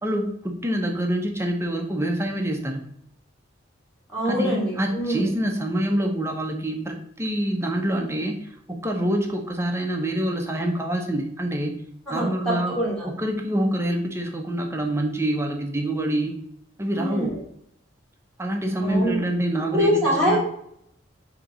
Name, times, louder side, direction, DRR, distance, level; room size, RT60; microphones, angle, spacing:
voice 1, 0.0-2.8 4.2-11.8 12.1-12.8 13.0-16.4 16.8-17.3 18.4-20.4, right 1 dB, 15° right, 2 dB, 0.8 m, -26 dB
voice 2, 4.1-5.3 12.1-13.1 16.9-17.4 18.8-19.2 19.7-20.4, equal, 5° left, -8 dB, 1.9 m, -24 dB
6.3 x 3.0 x 5.3 m, 0.70 s
head